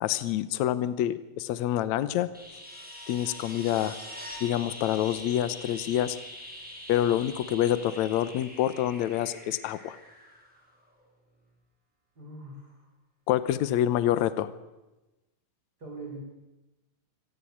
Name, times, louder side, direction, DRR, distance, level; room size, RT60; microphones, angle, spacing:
voice 1, 0.0-2.3 3.1-4.0 4.4-6.2 6.9-10.0 13.3-14.5, left 12 dB, 70° left, 15 dB, 2.2 m, -27 dB
sound 1, 2.3-11.0 13.4-13.5, equal, 5° right, 5.9 m, -44 dB
voice 2, 12.2-12.9 15.8-16.2, right 2 dB, 30° right, -1 dB, 5.8 m, -42 dB
24.0 x 18.0 x 8.6 m, 1.0 s
omnidirectional pair, 3.5 m